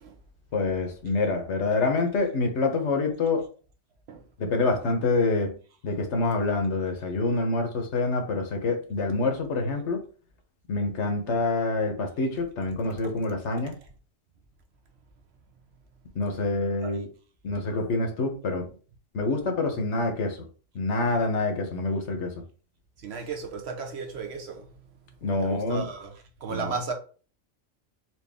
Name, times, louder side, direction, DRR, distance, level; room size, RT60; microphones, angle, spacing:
voice 1, 0.5-3.5 4.4-5.6 5.8-10.0 10.7-13.7 16.1-17.1 17.4-18.7 19.1-20.5 20.7-22.3 25.2-25.9 26.5-26.7, left 3 dB, 75° left, 1.2 m, -26 dB
voice 2, 23.0-24.8 25.2-26.9, right 5 dB, 65° right, 1.0 m, -35 dB
4.4 x 2.6 x 3.4 m
omnidirectional pair, 1.2 m